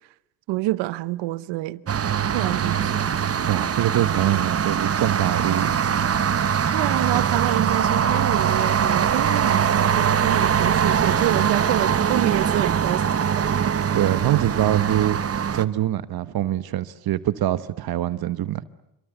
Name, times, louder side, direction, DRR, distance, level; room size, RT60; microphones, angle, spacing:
voice 1, 0.5-2.0 2.3-3.1 6.7-13.7, right 18 dB, 80° right, 0.9 m, -27 dB
sound 1, 1.9-15.6, right 8 dB, 35° right, 1.2 m, -22 dB
voice 2, 3.5-5.9 7.1-7.3 13.9-15.2 15.5-18.6, right 12 dB, 60° right, 1.2 m, -24 dB
27.0 x 24.0 x 8.1 m
supercardioid pair, 75°, 42 cm